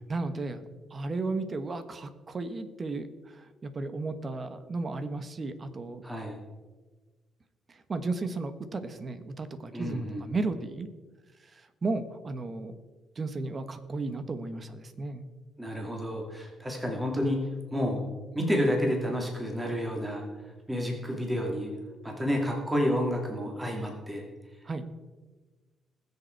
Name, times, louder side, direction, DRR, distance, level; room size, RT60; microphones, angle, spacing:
voice 1, 0.1-6.0 7.7-10.9 11.5-12.7 13.2-15.2 24.6-24.9, right 3 dB, 35° right, 10 dB, 1.2 m, -34 dB
voice 2, 6.0-6.4 9.7-10.2 15.6-17.4 17.7-18.0 18.3-20.3 20.7-21.7 22.0-24.2, equal, 10° right, 0 dB, 2.6 m, -30 dB
20.5 x 6.9 x 4.6 m, 1.3 s
cardioid pair, 90°, 0 cm